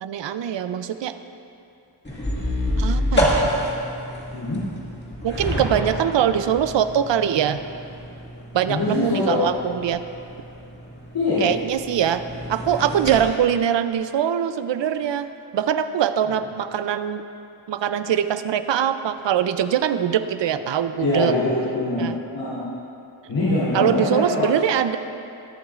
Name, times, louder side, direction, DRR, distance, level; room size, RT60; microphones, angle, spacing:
voice 1, 0.0-1.1 2.8-3.5 5.2-7.6 8.5-10.0 11.4-12.2 12.5-17.2 17.7-21.3 22.0-22.2 23.7-25.0, right 9 dB, 65° right, 10 dB, 0.6 m, -22 dB
sound 1, 2.0-13.2, equal, 20° left, 1.8 m, -28 dB
voice 2, 8.7-9.4 11.1-11.5 16.3-16.4 21.0-22.6 23.3-24.5, left 2 dB, 85° left, -11 dB, 3.1 m, -23 dB
20.0 x 11.0 x 2.5 m, 2.7 s
wide cardioid pair, 180°, 48 cm